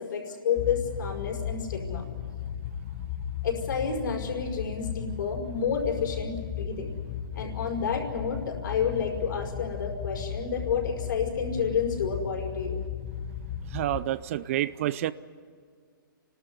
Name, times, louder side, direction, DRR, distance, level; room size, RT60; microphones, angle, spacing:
voice 1, 0.0-2.1 3.4-6.9 7.3-12.8, left 6 dB, 65° left, 1 dB, 5.5 m, -30 dB
sound 1, 0.6-14.0, left 8 dB, 35° left, 1.2 m, -36 dB
voice 2, 13.7-15.1, right 13 dB, 40° right, 17 dB, 0.5 m, -28 dB
29.5 x 13.0 x 9.6 m, 2.1 s
hypercardioid pair, 155°, 12 cm